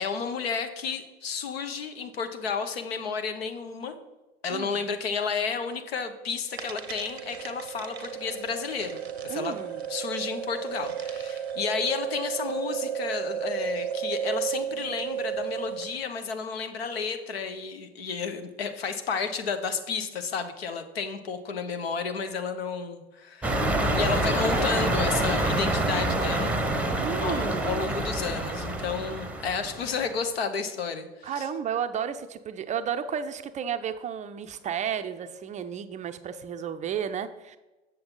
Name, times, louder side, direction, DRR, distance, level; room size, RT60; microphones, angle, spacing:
voice 1, 0.0-3.9 4.4-9.5 9.9-26.6 27.2-31.5, left 5 dB, 70° left, 8 dB, 0.9 m, -32 dB
sound 1, 6.5-16.0, right 8 dB, 85° right, 0.7 m, -33 dB
voice 2, 9.3-9.8 27.0-27.9 31.2-37.6, right 8 dB, 25° right, 9 dB, 0.4 m, -32 dB
sound 2, 23.4-30.0, right 1 dB, 5° right, 0.8 m, -27 dB
7.7 x 6.9 x 3.7 m, 1.1 s
figure-of-eight pair, 75°, 31 cm